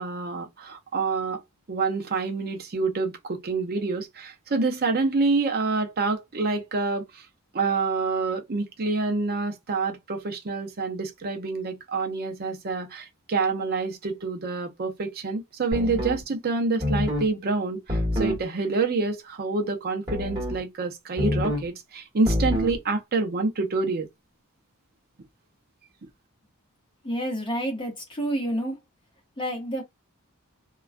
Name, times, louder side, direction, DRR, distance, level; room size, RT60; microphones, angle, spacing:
voice 1, 0.0-1.4 1.7-7.0 7.5-24.1, right 3 dB, 45° right, 0.6 m, -27 dB
sound 1, 15.7-16.2 16.8-17.3 17.9-18.4 20.1-20.6 21.2-21.7 22.3-22.8, left 1 dB, 20° right, 1.2 m, -26 dB
voice 2, 27.0-28.8 29.4-29.8, right 1 dB, 20° left, 0.8 m, -29 dB
2.3 x 2.2 x 2.4 m
head